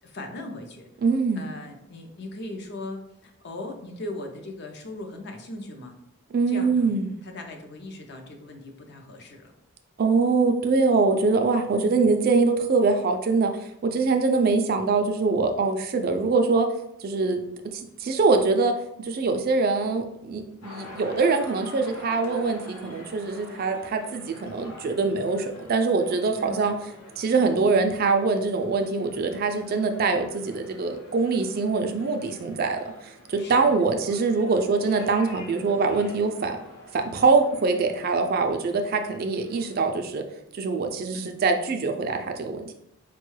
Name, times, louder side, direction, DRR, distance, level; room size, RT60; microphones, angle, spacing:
voice 1, 0.0-0.9 1.4-6.0 6.5-6.9 7.2-9.5 11.7-12.0 26.4-26.6 33.4-33.7 41.1-41.3, left 2 dB, 50° left, 4 dB, 0.5 m, -38 dB
voice 2, 1.0-1.5 6.3-7.2 10.0-13.5 13.8-16.7 17.0-17.4 18.0-18.7 19.0-26.7 27.2-36.6 36.9-40.2 40.5-42.7, right 4 dB, 45° right, 5 dB, 0.3 m, -23 dB
sound 1, 20.6-39.9, left 1 dB, 80° left, 0.8 m, -46 dB
4.5 x 2.2 x 3.1 m, 0.81 s
head